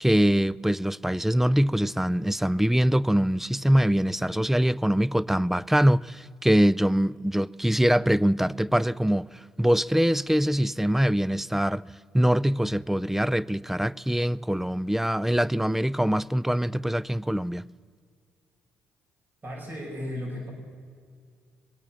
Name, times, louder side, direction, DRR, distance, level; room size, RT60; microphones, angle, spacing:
voice 1, 0.0-11.8 12.1-17.6, equal, 5° right, 0.3 m, -23 dB
voice 2, 19.4-20.5, left 1 dB, 40° right, 5.3 m, -35 dB
22.0 x 8.8 x 7.1 m
supercardioid pair, 60°, 5 cm